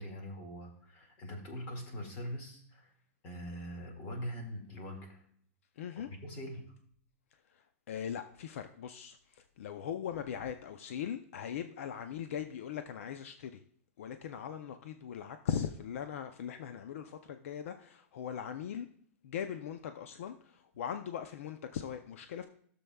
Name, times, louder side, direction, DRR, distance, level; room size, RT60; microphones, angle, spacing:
voice 1, 0.0-2.9 3.2-5.2 6.0-6.6, equal, 30° left, 2.0 m, -43 dB
voice 2, 5.8-6.1 7.5-13.6 14.0-18.9 19.2-22.5, left 8 dB, 70° left, 0.6 m, -40 dB
15.5 x 6.9 x 2.3 m
supercardioid pair, 170°, 8 cm